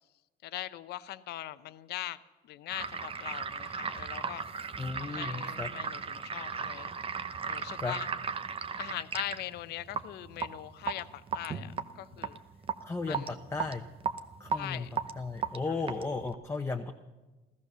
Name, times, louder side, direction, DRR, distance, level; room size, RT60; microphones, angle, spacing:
voice 1, 0.4-2.2 2.4-4.4 5.0-6.9 7.5-8.1 8.8-12.4 13.1-13.3 14.5-14.9, left 14 dB, 75° left, 14 dB, 0.7 m, -41 dB
sound 1, 2.7-16.4, right 6 dB, 35° right, 0.9 m, -36 dB
voice 2, 4.8-5.7 7.8-7.9 12.8-13.8 14.4-14.9 15.2-16.9, left 3 dB, 15° left, 3 dB, 0.9 m, -35 dB
15.0 x 14.0 x 6.8 m, 1.2 s
cardioid pair, 110°, 17 cm